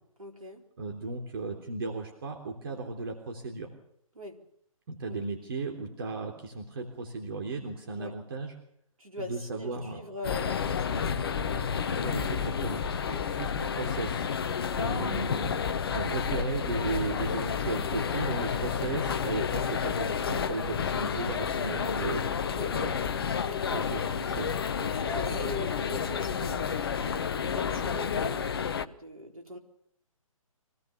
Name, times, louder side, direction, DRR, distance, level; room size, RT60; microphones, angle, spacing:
voice 1, 0.2-0.6 4.1-4.4 5.1-5.2 8.0-8.2 9.0-12.0 13.1-13.3 21.6-22.0 22.5-22.8 23.4-23.7 24.8-26.8 27.4-29.6, left 1 dB, 75° right, 2 dB, 4.2 m, -42 dB
voice 2, 0.8-3.7 4.9-8.5 9.2-10.0 11.9-14.2 14.7-15.7 15.9-22.2 22.6-22.9 23.7-24.5 25.2-25.4, right 3 dB, 40° right, 3 dB, 3.5 m, -35 dB
sound 1, 10.2-28.8, left 7 dB, 40° left, 1.1 m, -30 dB
25.0 x 18.5 x 7.0 m, 0.72 s
figure-of-eight pair, 135°, 18 cm